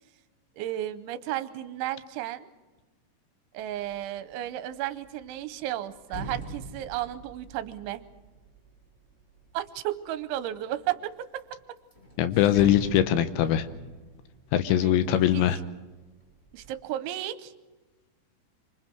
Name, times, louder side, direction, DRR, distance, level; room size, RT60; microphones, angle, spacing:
voice 1, 0.6-2.5 3.5-8.0 9.5-11.6 14.7-15.5 16.5-17.5, right 13 dB, 85° right, 12 dB, 3.2 m, -34 dB
sound 1, 3.7-4.0 4.4-9.8 10.4-11.0 11.4-11.5 11.8-15.7 16.1-16.7, right 2 dB, 15° left, 6.3 m, -43 dB
voice 2, 12.2-13.7 14.5-15.6, left 11 dB, 75° left, 11 dB, 3.1 m, -22 dB
26.5 x 25.5 x 4.6 m, 1.2 s
omnidirectional pair, 5.4 m